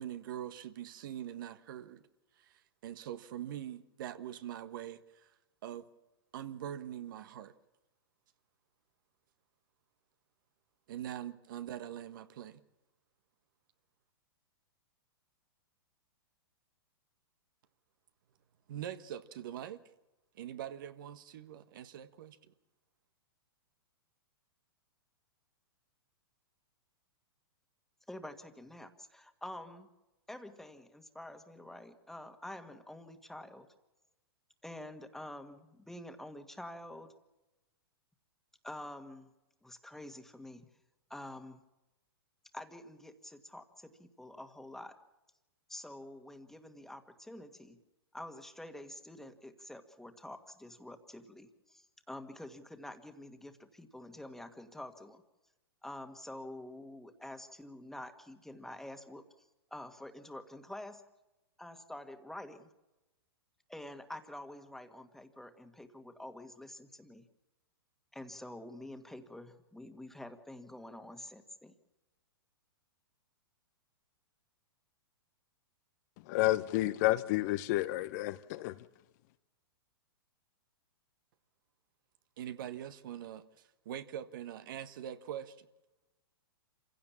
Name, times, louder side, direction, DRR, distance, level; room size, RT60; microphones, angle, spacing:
voice 1, 0.0-2.0 2.4-5.3 5.6-5.9 6.3-7.5 10.9-12.6 18.7-19.8 20.3-22.4 82.4-85.7, right 10 dB, 60° right, 1.5 m, -43 dB
voice 2, 28.1-29.9 30.3-33.7 34.6-37.1 38.6-39.3 39.6-40.7 41.1-41.6 42.5-44.9 45.7-47.8 48.1-55.2 55.8-61.0 61.6-62.7 63.7-67.2 68.1-71.7, left 1 dB, 5° left, 1.9 m, -47 dB
voice 3, 76.3-78.8, left 17 dB, 45° left, 1.0 m, -30 dB
27.0 x 16.5 x 7.3 m
hypercardioid pair, 115°, 13 cm